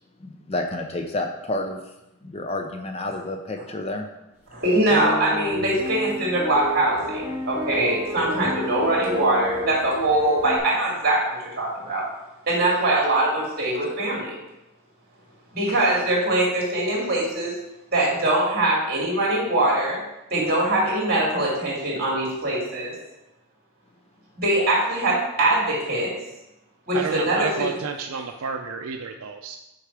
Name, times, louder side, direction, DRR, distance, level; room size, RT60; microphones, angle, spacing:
voice 1, 0.2-1.8 2.2-4.0 13.7-13.9, left 2 dB, 25° left, 4 dB, 0.5 m, -30 dB
voice 2, 4.5-12.0 12.5-14.4 15.5-17.5 17.9-20.0 20.3-22.9 24.4-26.1 26.9-27.5, right 1 dB, 45° right, -4 dB, 2.7 m, -22 dB
sound 1, 4.8-10.6, equal, 10° right, 1.4 m, -31 dB
voice 3, 26.9-29.6, right 5 dB, 75° right, 4 dB, 0.5 m, -30 dB
6.6 x 4.9 x 4.7 m, 0.94 s
head